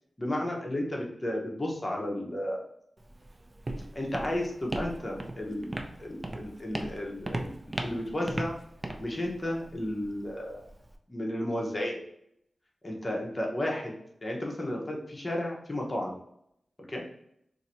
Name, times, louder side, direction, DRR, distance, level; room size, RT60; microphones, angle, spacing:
voice 1, 0.2-2.6 3.9-8.5 9.0-10.7 11.1-12.0 12.8-13.9 14.2-16.1 16.9-17.0, left 1 dB, 25° left, -1 dB, 0.9 m, -33 dB
Walk footsteps, 3.0-10.9, right 1 dB, 25° right, 0.4 m, -38 dB
2.7 x 2.6 x 4.3 m, 0.74 s
wide cardioid pair, 115°, 0 cm